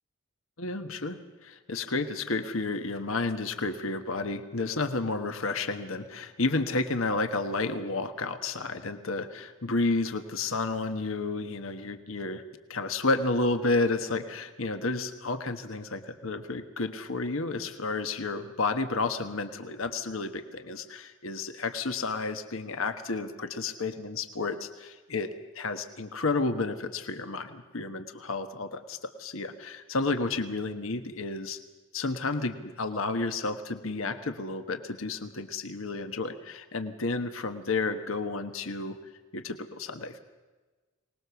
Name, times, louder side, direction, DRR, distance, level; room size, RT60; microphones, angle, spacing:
voice 1, 0.6-12.4 12.7-25.3 25.5-31.6 31.9-39.0 39.3-40.2, left 3 dB, 70° left, 8 dB, 1.3 m, -31 dB
24.0 x 19.5 x 7.0 m, 1.3 s
head